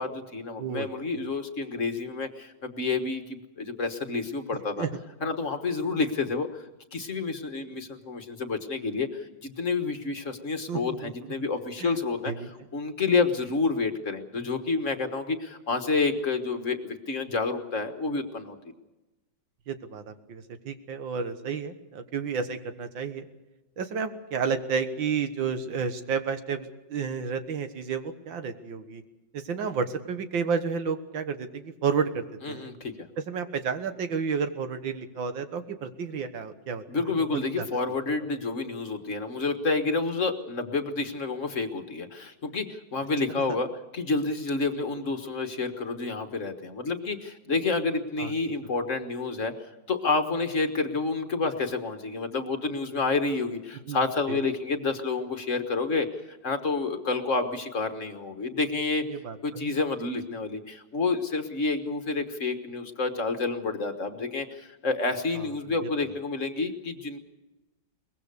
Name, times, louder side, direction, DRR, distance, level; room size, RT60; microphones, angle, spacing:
voice 1, 0.0-4.9 5.2-6.6 6.9-12.3 12.7-18.6 32.4-33.1 36.9-59.0 59.4-67.2, left 3 dB, 45° left, 7 dB, 1.6 m, -29 dB
voice 2, 10.7-11.1 11.8-11.9 12.2-12.5 19.7-23.3 23.8-29.0 29.3-32.7 33.2-37.7 48.2-48.3 53.9-54.0 54.3-54.4 59.1-59.7 65.8-65.9, right 6 dB, 85° right, 9 dB, 2.1 m, -31 dB
23.0 x 20.5 x 6.8 m, 1.0 s
omnidirectional pair, 2.0 m